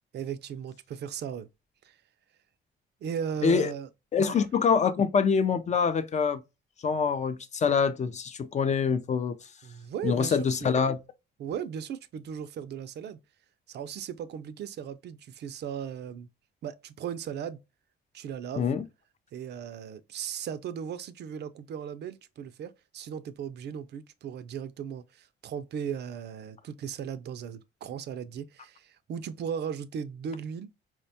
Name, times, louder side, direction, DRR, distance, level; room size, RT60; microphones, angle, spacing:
voice 1, 0.1-1.5 1.8-2.0 3.0-3.9 4.2-4.4 9.6-10.7 11.4-13.2 13.7-16.3 16.6-17.6 18.1-18.7 19.3-30.7, right 8 dB, 60° right, 0.4 m, -37 dB
voice 2, 4.1-6.4 6.8-9.4 10.0-11.0 18.6-18.8, left 6 dB, 35° left, 0.4 m, -25 dB
4.3 x 2.2 x 2.7 m
cardioid pair, 90°, 20 cm